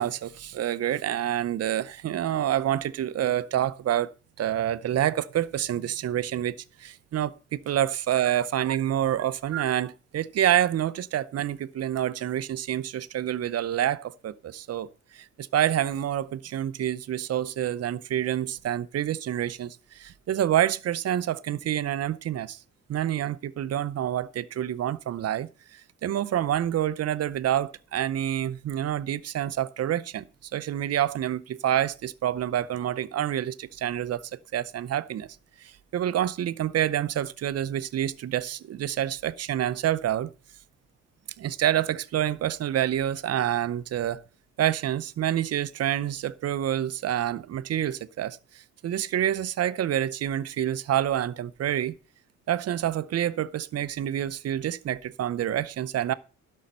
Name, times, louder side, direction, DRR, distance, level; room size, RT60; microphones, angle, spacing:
voice 1, 0.0-4.1 4.4-14.9 15.1-22.6 22.9-25.5 26.0-30.2 30.5-35.3 35.6-40.3 41.4-44.2 44.6-48.4 48.8-52.0 52.5-56.1, right 11 dB, 55° right, 0.7 m, -27 dB
11.5 x 6.4 x 5.5 m
cardioid pair, 90°, 30 cm